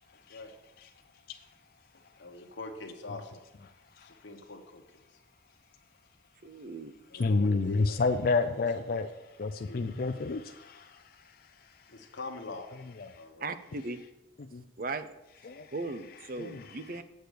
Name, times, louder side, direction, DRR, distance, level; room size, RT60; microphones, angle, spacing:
voice 1, 2.1-3.4 4.0-5.2 7.1-8.0 8.5-8.9 9.6-9.9 11.9-12.7 13.1-13.5, left 2 dB, 90° left, 4 dB, 1.3 m, -44 dB
voice 2, 6.4-6.9 13.4-14.0 14.8-15.1 15.7-17.0, right 3 dB, 50° right, 11 dB, 0.6 m, -37 dB
voice 3, 7.1-11.9 13.0-13.2 14.4-14.6 15.4-15.7 16.4-17.0, left 3 dB, 50° left, 6 dB, 0.4 m, -31 dB
8.0 x 6.6 x 6.7 m, 0.96 s
head